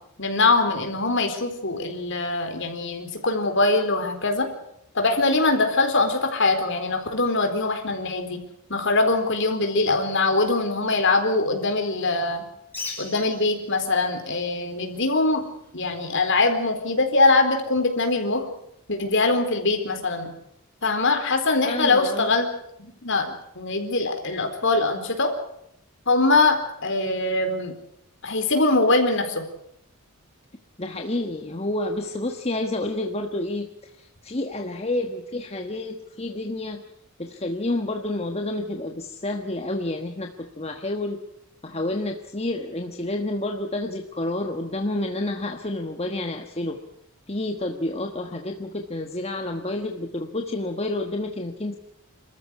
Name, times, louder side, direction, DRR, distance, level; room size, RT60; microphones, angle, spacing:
voice 1, 0.2-4.5 4.9-8.4 8.7-12.4 13.0-15.4 15.7-18.5 18.9-20.3 20.8-22.5 22.8-25.3 26.1-27.7 28.2-29.4, left 3 dB, 55° left, 5 dB, 4.2 m, -22 dB
Bird, 12.6-19.3, left 4 dB, 10° left, 6.0 m, -44 dB
voice 2, 21.6-22.4 30.8-36.8 37.2-41.2 41.6-46.8 47.3-51.8, left 2 dB, 30° left, 4 dB, 1.3 m, -29 dB
27.5 x 14.0 x 9.6 m, 0.76 s
head